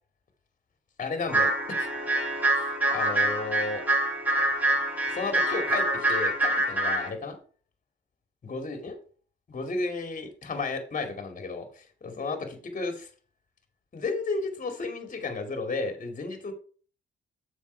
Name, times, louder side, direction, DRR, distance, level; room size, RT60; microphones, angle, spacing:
voice 1, 1.0-1.5 1.8-1.9 2.5-3.8 5.1-7.4 8.4-9.0 9.5-13.1 13.9-16.5, left 3 dB, 40° left, 6 dB, 2.5 m, -33 dB
sound 1, 1.3-7.1, right 1 dB, 10° right, 4.3 m, -26 dB
7.4 x 6.3 x 4.6 m, 0.40 s
cardioid pair, 90°, 20 cm